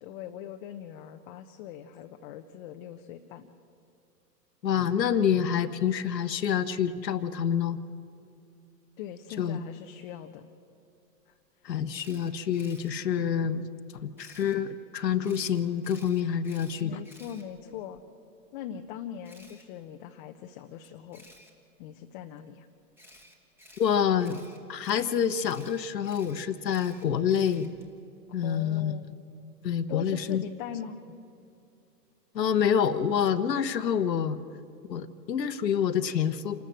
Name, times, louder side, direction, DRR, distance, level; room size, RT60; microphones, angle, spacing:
voice 1, 0.0-3.5 9.0-10.5 16.8-18.0 18.5-21.3 21.8-22.7 28.3-29.1 29.9-31.0, left 9 dB, 30° left, 5 dB, 0.7 m, -41 dB
voice 2, 4.6-7.8 9.4-9.6 11.6-13.7 13.9-17.0 23.8-24.4 24.7-27.7 28.3-29.0 29.6-30.4 32.3-34.4 34.9-36.6, left 8 dB, 80° left, 10 dB, 1.1 m, -27 dB
Camera, 11.9-12.9 14.2-14.6 15.2-18.0 19.2-19.6 21.1-21.5 23.0-27.9, left 1 dB, 5° right, 1.8 m, -54 dB
28.0 x 13.0 x 7.6 m, 2.6 s
hypercardioid pair, 130°, 49 cm